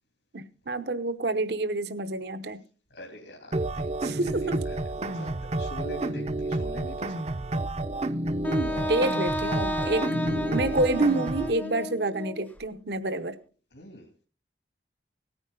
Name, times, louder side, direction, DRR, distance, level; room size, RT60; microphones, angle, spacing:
voice 1, 0.3-2.6 4.0-4.6 8.5-10.0 10.5-13.4, right 2 dB, 60° right, 0.9 m, -28 dB
voice 2, 2.9-7.2 9.1-9.3 9.7-10.4 10.7-10.8 13.7-14.1, left 1 dB, 75° left, 3.1 m, -44 dB
sound 1, 3.5-11.5, right 2 dB, 35° right, 0.6 m, -30 dB
Wind instrument woodwind instrument, 8.4-12.5, left 1 dB, 10° left, 0.6 m, -32 dB
18.0 x 9.8 x 3.8 m
head